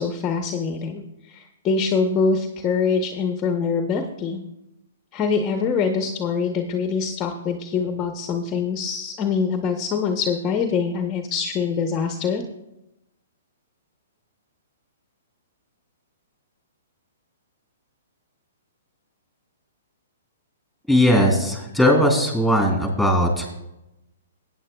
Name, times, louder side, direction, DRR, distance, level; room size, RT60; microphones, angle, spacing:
voice 1, 0.0-4.4 5.1-12.4, left 5 dB, 25° left, 5 dB, 0.8 m, -24 dB
voice 2, 20.9-23.5, equal, 5° right, 1 dB, 3.1 m, -18 dB
17.5 x 9.2 x 2.3 m, 0.92 s
hypercardioid pair, 130°, 0 cm